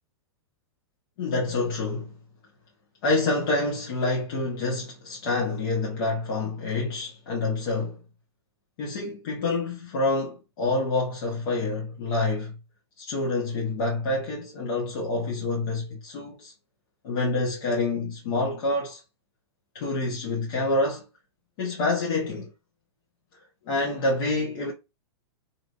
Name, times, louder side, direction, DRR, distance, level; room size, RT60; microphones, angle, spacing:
voice 1, 1.2-2.2 3.0-8.0 8.8-12.6 13.0-16.5 17.0-19.0 19.7-21.0 21.6-22.5 23.7-24.7, left 2 dB, 55° left, 1.0 m, -27 dB
3.1 x 2.7 x 2.5 m
hypercardioid pair, 130°, 14 cm